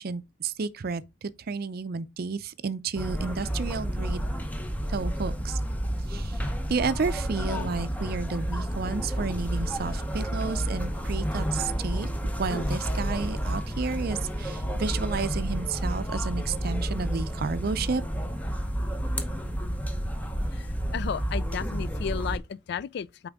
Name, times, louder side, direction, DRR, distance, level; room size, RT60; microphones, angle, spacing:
voice 1, 0.0-4.3 4.9-5.6 6.1-6.3 6.7-12.1 12.4-18.0, right 4 dB, 55° right, 0.5 m, -31 dB
sound 1, 2.9-22.4, equal, 10° left, 0.8 m, -30 dB
voice 2, 20.5-23.3, left 7 dB, 60° left, 0.3 m, -34 dB
8.5 x 3.5 x 3.6 m
head